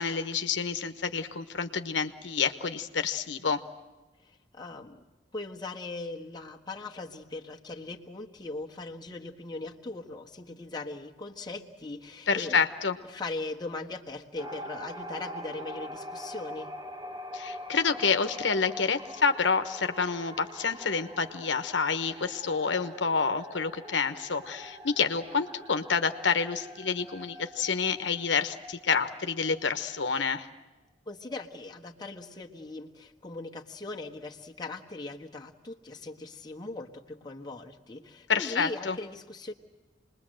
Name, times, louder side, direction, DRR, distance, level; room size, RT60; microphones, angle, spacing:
voice 1, 0.0-3.6 12.3-13.0 17.3-30.5 38.3-39.0, left 5 dB, 75° left, 9 dB, 1.2 m, -28 dB
voice 2, 4.2-5.0 5.3-12.6 13.0-16.7 31.1-39.5, left 3 dB, 20° left, 0 dB, 1.4 m, -39 dB
sound 1, 14.4-30.3, equal, 25° right, 1.4 m, -44 dB
27.5 x 21.0 x 7.7 m, 1.1 s
head